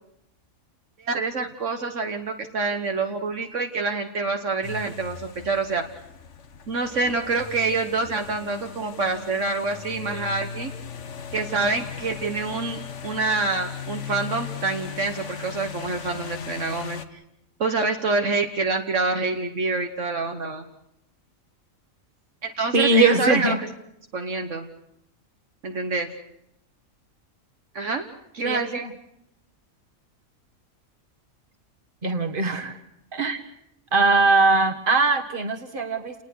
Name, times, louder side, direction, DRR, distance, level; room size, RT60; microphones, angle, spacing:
voice 1, 1.0-5.8 6.7-10.7 11.3-17.2 17.6-20.6 22.4-23.5 24.1-24.7 25.6-26.1 27.7-28.1 28.3-28.8, right 3 dB, 60° right, 5 dB, 1.7 m, -26 dB
sound 1, 4.6-17.1, left 7 dB, 60° left, 1.5 m, -38 dB
voice 2, 22.7-23.6 28.4-28.9 32.0-32.8 33.1-33.4 33.9-36.2, right 3 dB, 40° right, 6 dB, 2.0 m, -21 dB
30.0 x 19.5 x 6.4 m, 0.80 s
omnidirectional pair, 1.4 m